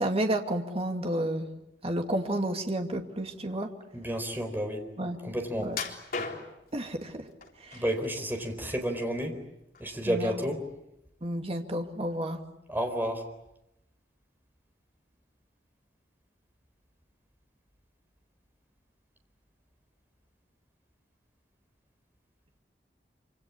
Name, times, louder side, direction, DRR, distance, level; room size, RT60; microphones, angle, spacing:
voice 1, 0.0-1.5 1.8-3.7 5.0-5.2 5.6-5.8 6.7-7.3 7.6-7.8 10.1-10.3 11.2-12.4, right 1 dB, 35° right, 4 dB, 2.4 m, -31 dB
voice 2, 3.9-4.9 5.2-5.7 7.7-9.4 9.8-10.6 12.7-13.2, equal, 10° right, 4 dB, 4.3 m, -31 dB
sound 1, 5.7-6.7 7.4-8.1 8.5-9.4 9.7-9.9 10.5-10.6, left 4 dB, 55° left, 3.8 m, -37 dB
26.5 x 26.5 x 8.5 m, 0.87 s
head